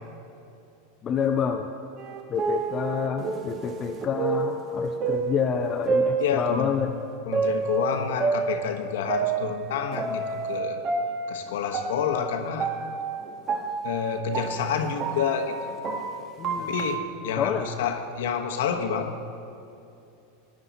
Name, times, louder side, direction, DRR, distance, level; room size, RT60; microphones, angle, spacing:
voice 1, 1.0-1.7 2.3-6.9 16.4-16.7 17.4-17.6, left 7 dB, 30° left, 3 dB, 0.6 m, -28 dB
sound 1, 2.0-6.8 7.3-10.6 10.8-17.0, right 4 dB, 35° right, 1.3 m, -29 dB
voice 2, 6.2-6.7 7.3-10.8 11.3-12.7 13.8-15.8 16.6-19.1, left 7 dB, 70° left, 5 dB, 1.1 m, -29 dB
17.0 x 9.6 x 4.2 m, 2.7 s
hypercardioid pair, 95°, 0 cm